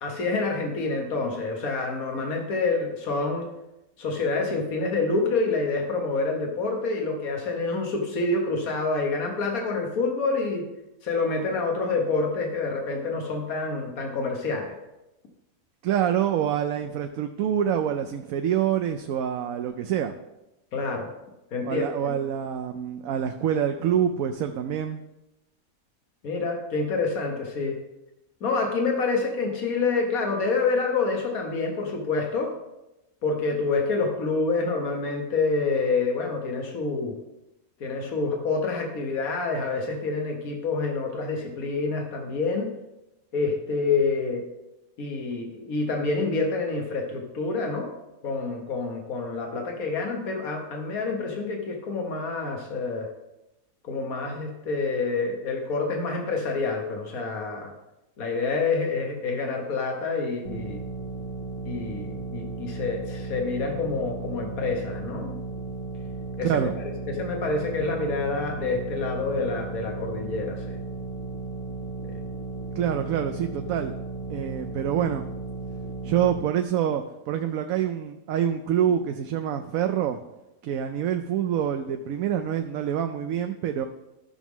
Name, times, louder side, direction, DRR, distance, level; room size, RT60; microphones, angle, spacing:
voice 1, 0.0-3.5 4.0-10.6 11.0-14.7 20.7-21.1 21.5-22.1 26.2-27.8 28.4-32.5 33.2-37.1 37.8-42.7 43.3-44.4 45.0-47.9 48.2-53.1 53.8-57.7 58.2-60.8 61.6-65.4 66.4-70.8 72.1-72.2, left 3 dB, 90° left, 2 dB, 1.6 m, -27 dB
voice 2, 15.8-20.1 21.6-25.0 66.4-66.7 72.8-73.9 74.3-75.2 76.0-80.2 80.6-83.9, right 9 dB, 80° right, 6 dB, 1.0 m, -26 dB
sound 1, 60.4-76.4, right 3 dB, 70° left, 1.4 m, -35 dB
13.5 x 6.0 x 3.7 m, 0.95 s
omnidirectional pair, 1.5 m